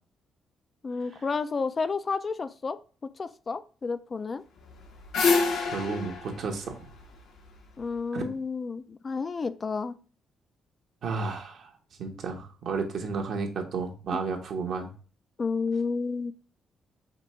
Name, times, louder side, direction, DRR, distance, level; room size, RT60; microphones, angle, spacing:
voice 1, 0.8-2.8 3.2-4.4 7.8-10.0 15.4-16.3, left 4 dB, 35° left, 12 dB, 0.4 m, -31 dB
sound 1, 4.6-7.8, left 4 dB, 85° left, 1.2 m, -27 dB
voice 2, 5.6-6.9 8.1-8.3 11.0-11.7 12.0-14.9, right 4 dB, 65° right, 3 dB, 1.1 m, -32 dB
5.1 x 3.3 x 3.0 m, 0.39 s
cardioid pair, 90°, 0 cm